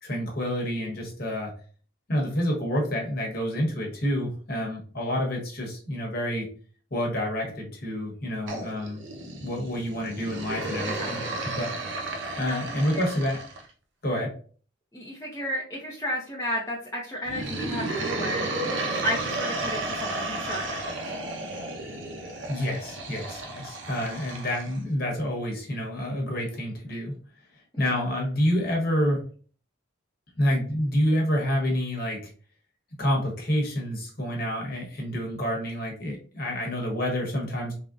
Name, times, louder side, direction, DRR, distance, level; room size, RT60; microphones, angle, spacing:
voice 1, 0.0-1.5 2.1-6.5 6.9-9.0 9.4-11.7 12.4-13.4 14.0-14.3 22.5-27.2 27.8-29.3 30.4-32.2 33.0-37.7, equal, 45° left, 0 dB, 1.0 m, -28 dB
sound 1, 8.5-13.7 17.2-24.8, right 2 dB, 65° right, 0.6 m, -33 dB
voice 2, 10.9-11.3 12.3-13.1 14.1-14.3 14.9-18.5 19.0-20.8, equal, 15° left, -4 dB, 0.4 m, -33 dB
3.6 x 2.1 x 2.4 m, 0.42 s
head